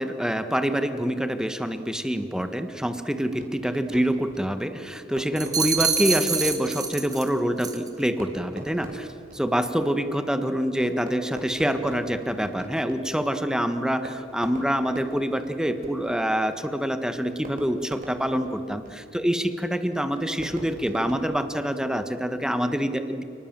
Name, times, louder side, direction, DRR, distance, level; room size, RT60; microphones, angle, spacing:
voice 1, 0.0-9.1 9.3-23.2, equal, 5° right, 9 dB, 1.4 m, -26 dB
Fireworks, 3.3-22.1, right 1 dB, 50° right, 3.9 m, -44 dB
sound 1, 5.4-7.3 7.6-7.9, right 5 dB, 20° right, 2.1 m, -26 dB
29.0 x 19.5 x 7.5 m, 2.7 s
head